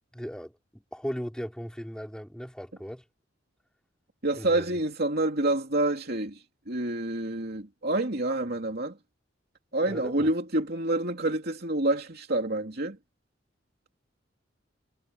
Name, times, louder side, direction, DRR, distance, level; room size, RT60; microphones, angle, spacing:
voice 1, 0.1-3.0 4.4-4.7 9.9-10.3, equal, 5° left, 4.6 m, -37 dB
voice 2, 4.2-9.0 9.7-13.0, right 2 dB, 55° right, 2.9 m, -28 dB
head